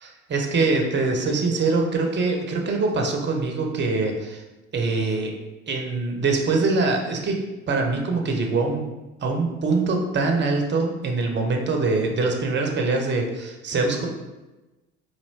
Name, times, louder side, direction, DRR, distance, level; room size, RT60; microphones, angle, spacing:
voice 1, 0.0-4.4 4.7-5.3 5.7-7.4 7.7-8.8 9.2-14.1, right 3 dB, 30° right, 3 dB, 0.8 m, -23 dB
4.2 x 2.9 x 2.8 m, 1.1 s
figure-of-eight pair, 55°, 35 cm